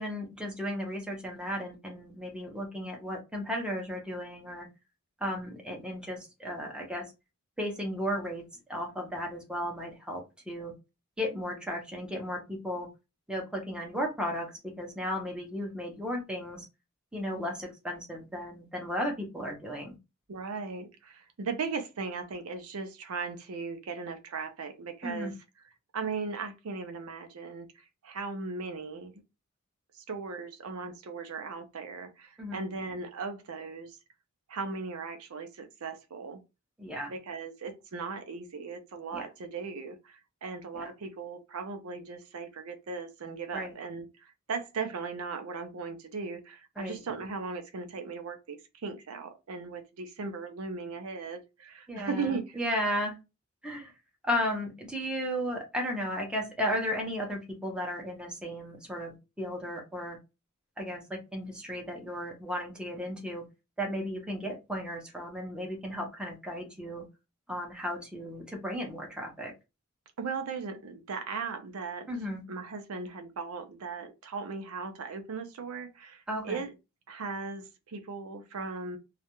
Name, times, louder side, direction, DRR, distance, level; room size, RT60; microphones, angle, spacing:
voice 1, 0.0-4.7 5.2-7.1 7.6-10.7 11.2-12.9 13.3-16.6 17.1-20.0 25.0-25.3 32.4-32.6 36.8-37.1 39.1-39.2 40.8-40.9 43.5-43.7 46.8-47.0 51.9-53.1 53.6-53.9 54.2-60.2 60.8-63.5 63.8-67.1 67.5-69.5 72.1-72.4 76.3-76.6, equal, 5° right, 0.7 m, -35 dB
voice 2, 20.3-25.3 25.9-29.1 29.9-34.0 34.5-36.4 37.1-52.6 70.2-72.1 72.5-76.7 77.1-79.0, right 4 dB, 80° right, 0.5 m, -38 dB
2.4 x 2.1 x 2.9 m
head